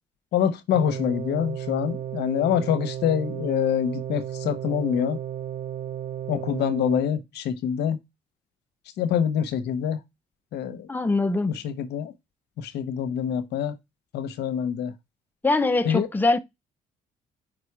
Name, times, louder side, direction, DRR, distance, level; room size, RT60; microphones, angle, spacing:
voice 1, 0.3-5.2 6.3-8.0 9.0-10.0 10.5-10.9 11.6-12.1 12.6-13.8 14.1-14.9 15.9-16.1, left 9 dB, 75° left, 0.8 m, -25 dB
sound 1, 0.7-7.0, right 10 dB, 55° right, 0.5 m, -33 dB
voice 2, 10.9-11.5 15.4-16.4, left 2 dB, 10° left, 0.6 m, -22 dB
5.0 x 4.3 x 4.7 m
supercardioid pair, 75°, 17 cm